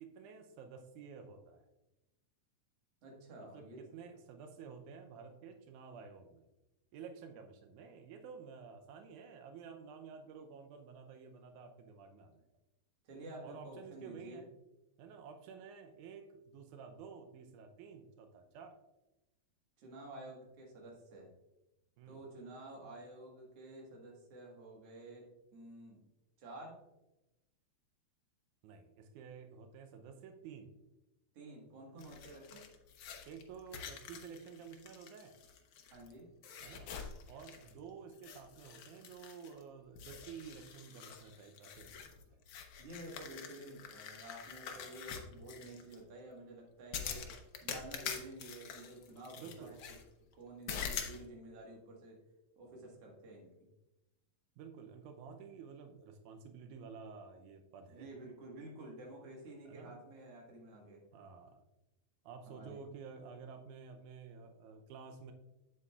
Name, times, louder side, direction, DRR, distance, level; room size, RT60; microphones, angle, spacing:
voice 1, 0.0-1.7 3.4-6.5 6.9-12.4 13.4-14.5 15.0-18.8 22.0-22.2 28.6-30.7 33.3-35.3 36.6-36.9 37.3-42.2 44.7-45.0 47.1-47.5 49.4-49.8 54.6-58.1 59.7-60.0 61.1-61.6 62.3-65.3, right 6 dB, 90° right, 5 dB, 2.1 m, -51 dB
voice 2, 3.0-3.8 13.0-14.4 19.8-21.3 22.1-25.3 25.5-26.0 26.4-26.8 31.3-32.7 35.9-36.3 42.8-47.2 47.6-50.0 50.4-52.2 52.6-53.5 57.9-61.0 62.5-62.8, right 1 dB, 55° right, -1 dB, 2.4 m, -51 dB
sound 1, 32.0-36.1 36.4-37.8 38.1-39.6 40.0-46.0 46.9-50.0 50.7-51.2, left 7 dB, 85° left, 1.1 m, -46 dB
8.3 x 7.8 x 2.3 m, 0.98 s
omnidirectional pair, 3.4 m